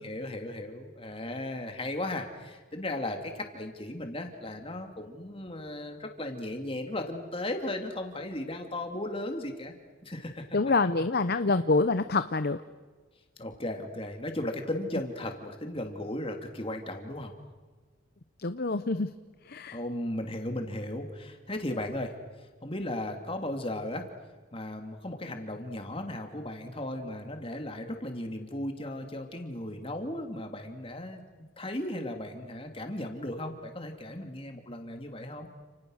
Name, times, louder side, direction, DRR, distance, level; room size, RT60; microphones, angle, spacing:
voice 1, 0.0-10.6 13.4-17.3 19.7-24.1 24.5-31.2 31.6-35.5, left 1 dB, 25° left, 4 dB, 2.8 m, -36 dB
voice 2, 10.5-12.6 18.4-19.1 19.5-19.8, left 3 dB, 50° left, 11 dB, 0.8 m, -26 dB
30.0 x 28.5 x 6.5 m, 1.4 s
head